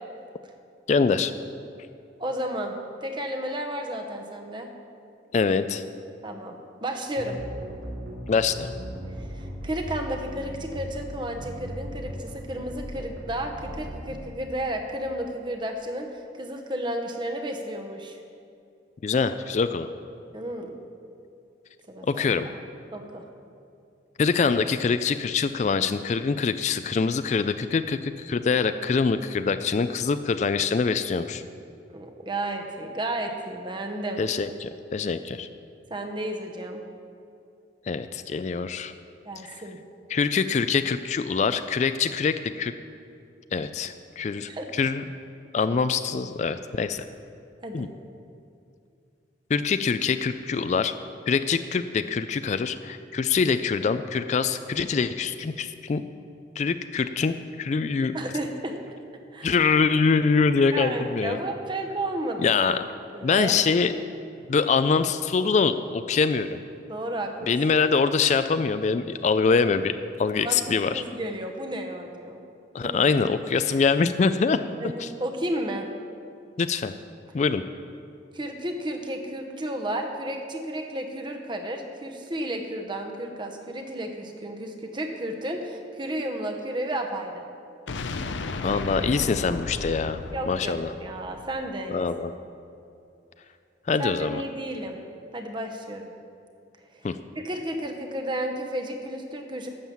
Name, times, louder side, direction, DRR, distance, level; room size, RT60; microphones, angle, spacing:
voice 1, 0.9-1.3 5.3-5.8 8.3-8.7 19.0-19.9 22.1-22.5 24.2-31.4 34.2-35.5 37.9-38.9 39.5-39.6 40.1-42.7 43.5-45.0 45.5-47.0 47.7-47.9 49.5-50.9 51.3-56.0 56.6-58.2 59.4-61.4 62.4-62.8 63.2-63.9 64.5-66.6 67.5-71.0 72.7-74.6 75.0-75.1 76.6-76.9 77.3-77.6 88.6-90.2 90.5-90.9 91.9-92.3 93.9-94.4 97.0-97.2, left 5 dB, 40° left, 11 dB, 0.3 m, -24 dB
voice 2, 2.2-4.7 6.2-7.4 9.1-18.2 20.3-20.8 21.9-22.5 22.9-23.2 31.9-34.2 35.9-36.8 39.2-39.8 44.5-44.7 47.6-47.9 58.1-58.8 59.3-59.6 60.7-62.5 63.1-63.6 66.9-67.6 70.3-70.6 70.9-72.4 72.8-73.0 74.8-75.9 78.3-87.4 90.3-92.1 94.0-95.0 95.3-96.1 96.9-97.1 97.4-99.7, right 1 dB, 25° right, 3 dB, 1.0 m, -32 dB
sound 1, 7.2-14.2, equal, 75° right, 2.5 m, -37 dB
sound 2, 87.9-91.8, left 3 dB, 80° left, 0.6 m, -34 dB
12.0 x 7.4 x 7.1 m, 2.5 s
head